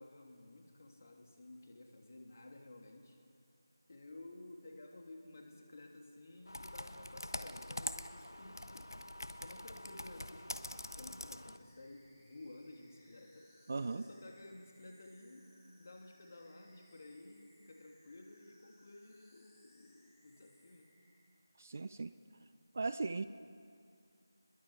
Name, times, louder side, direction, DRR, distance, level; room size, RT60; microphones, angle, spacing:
voice 1, 0.0-3.2 3.9-8.9 9.4-13.5 13.9-15.5 15.8-20.9, left 2 dB, 40° left, 2 dB, 2.7 m, -54 dB
Computer keyboard, 6.5-11.6, left 1 dB, 80° left, 1.1 m, -45 dB
sound 1, 11.5-21.2, left 1 dB, 20° left, 7.2 m, -69 dB
voice 2, 13.7-14.0 21.6-22.1 22.7-23.2, right 3 dB, 35° right, 13 dB, 0.5 m, -37 dB
29.5 x 22.0 x 4.8 m, 2.3 s
figure-of-eight pair, 165°, 2 cm